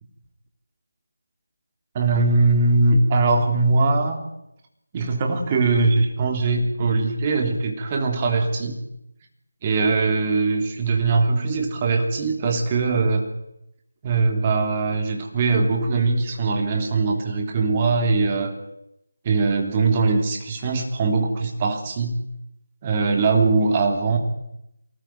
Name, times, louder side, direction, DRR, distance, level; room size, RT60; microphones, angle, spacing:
voice 1, 1.9-4.2 4.9-8.8 9.6-13.3 14.0-18.5 19.2-22.2 22.8-24.2, right 3 dB, 20° right, 3 dB, 3.4 m, -21 dB
23.5 x 19.0 x 9.4 m, 0.83 s
figure-of-eight pair, 160°, 0 cm